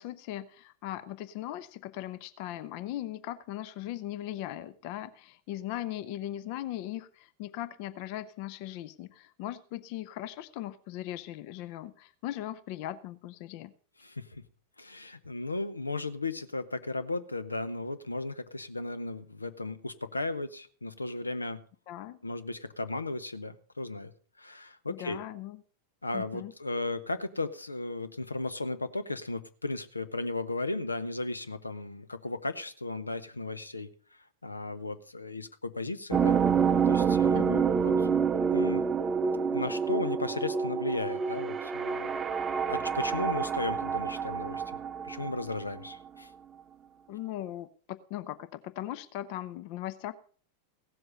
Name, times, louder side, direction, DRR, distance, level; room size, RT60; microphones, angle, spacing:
voice 1, 0.0-13.7 21.9-22.2 24.9-25.6 26.1-26.5 37.3-37.7 47.1-50.1, left 13 dB, 45° left, 14 dB, 0.6 m, -39 dB
voice 2, 14.0-14.4 14.8-21.6 22.2-24.1 24.4-25.2 26.0-36.4 36.9-37.9 38.5-38.9 39.5-42.2 42.7-44.8 45.0-46.3, left 2 dB, 80° left, 13 dB, 0.7 m, -35 dB
sound 1, 36.1-46.0, right 6 dB, 20° right, 0.6 m, -28 dB
16.0 x 7.8 x 5.4 m, 0.43 s
figure-of-eight pair, 90°, 0 cm